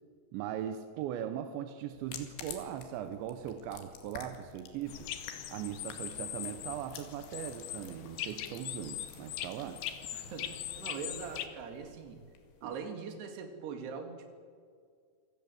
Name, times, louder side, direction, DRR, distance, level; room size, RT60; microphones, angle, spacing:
voice 1, 0.3-5.1 5.5-9.8 12.6-12.8, right 10 dB, 90° right, 9 dB, 3.3 m, -39 dB
sound 1, 1.9-12.7, left 7 dB, 90° left, 4.5 m, -52 dB
sound 2, 4.9-11.5, left 11 dB, 65° left, 2.7 m, -41 dB
sound 3, 6.0-11.4, right 1 dB, 25° right, 3.7 m, -63 dB
voice 2, 10.1-12.2 12.6-14.3, right 5 dB, 70° right, 6 dB, 4.3 m, -42 dB
27.0 x 18.0 x 7.9 m, 2.1 s
omnidirectional pair, 5.0 m